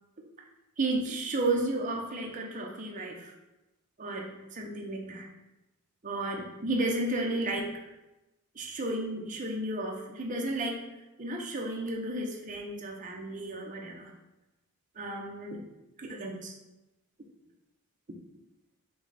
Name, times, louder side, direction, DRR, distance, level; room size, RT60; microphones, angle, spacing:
voice 1, 0.8-3.3 4.0-5.3 6.0-7.8 8.5-10.9 11.2-14.1 15.0-15.6 16.0-16.5, right 2 dB, 35° right, 0 dB, 0.6 m, -33 dB
5.7 x 2.2 x 4.0 m, 1.0 s
head